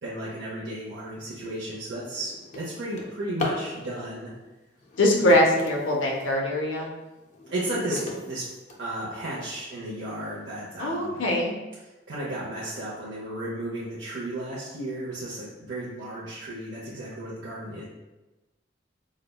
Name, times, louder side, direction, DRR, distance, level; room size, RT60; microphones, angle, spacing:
voice 1, 0.0-4.3 7.5-8.0 8.3-8.4 8.8-11.2 12.1-17.9, right 1 dB, 70° right, -7 dB, 0.6 m, -34 dB
Drawer open or close, 1.0-1.2 1.7-3.7 4.8-6.4 6.9-9.3 10.0-10.1 10.6-10.7 11.0-11.4, left 2 dB, 40° left, 0.4 m, -37 dB
voice 2, 5.0-6.9 10.8-11.5, left 1 dB, 90° left, 0 dB, 0.6 m, -22 dB
4.8 x 2.1 x 2.2 m, 1.1 s
head